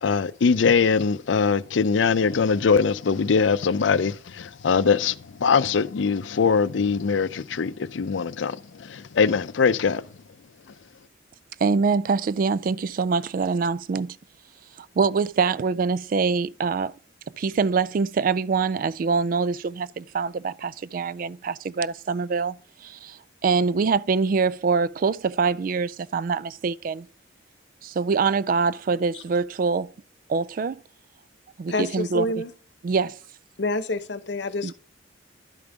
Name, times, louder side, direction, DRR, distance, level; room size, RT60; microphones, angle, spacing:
voice 1, 0.0-5.2 5.4-10.0, left 5 dB, 85° left, 0.5 m, -22 dB
voice 2, 11.6-14.2 15.0-16.9 17.4-22.6 22.8-27.1 27.8-29.9 30.3-30.8 31.6-32.2 32.8-33.2 34.6-34.7, right 5 dB, 50° right, 0.3 m, -24 dB
voice 3, 31.7-32.5 33.6-34.7, left 2 dB, 65° left, 0.9 m, -27 dB
11.5 x 5.2 x 3.5 m
head